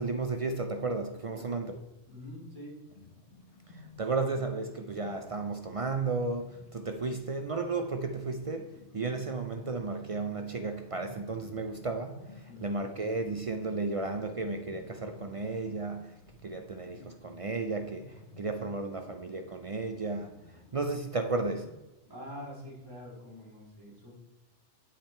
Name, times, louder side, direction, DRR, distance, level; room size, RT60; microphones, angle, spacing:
voice 1, 0.0-1.8 4.0-12.2 12.6-16.1 16.4-20.3 20.7-21.7, right 3 dB, 50° right, 0.4 m, -33 dB
voice 2, 1.3-1.6 2.1-2.8 12.5-12.8 22.1-24.2, left 1 dB, 20° right, 2.8 m, -45 dB
sound 1, 2.8-21.7, left 2 dB, 75° left, 1.7 m, -54 dB
8.5 x 5.8 x 4.3 m
omnidirectional pair, 1.2 m